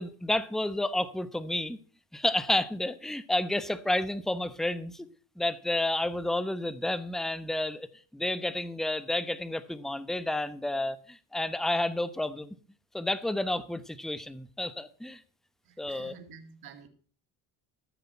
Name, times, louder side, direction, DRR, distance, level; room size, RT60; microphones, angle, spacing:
voice 1, 0.0-1.8 2.1-5.1 5.4-7.9 8.1-12.5 12.9-15.2 15.8-16.1, left 1 dB, ahead, 0.9 m, -30 dB
voice 2, 15.6-16.9, right 6 dB, 60° right, 2.3 m, -49 dB
14.0 x 6.9 x 5.6 m
supercardioid pair, 85°, 42 cm